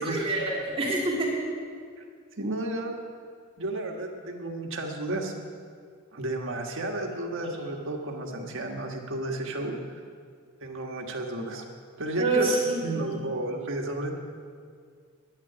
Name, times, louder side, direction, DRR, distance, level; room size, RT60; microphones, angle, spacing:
voice 1, 0.0-1.3 12.2-13.2, right 2 dB, 30° right, -5 dB, 2.8 m, -27 dB
voice 2, 2.4-3.0 3.6-5.3 6.1-9.8 10.6-11.7 12.0-12.5 12.8-14.2, right 1 dB, 65° right, 2 dB, 1.6 m, -32 dB
10.0 x 9.7 x 9.9 m, 2.1 s
head